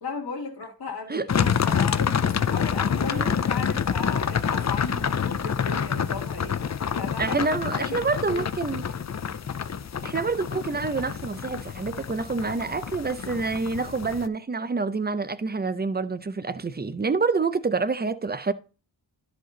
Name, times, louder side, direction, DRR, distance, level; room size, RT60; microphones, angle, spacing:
voice 1, 0.0-6.6 6.9-7.4 7.8-8.0 8.3-8.5, left 4 dB, 55° left, 1.9 m, -36 dB
sound 1, 1.3-14.3, left 7 dB, 40° left, 0.5 m, -27 dB
voice 2, 7.2-8.8 10.0-18.5, right 4 dB, 25° right, 0.5 m, -27 dB
12.5 x 5.1 x 3.9 m
wide cardioid pair, 120°, 44 cm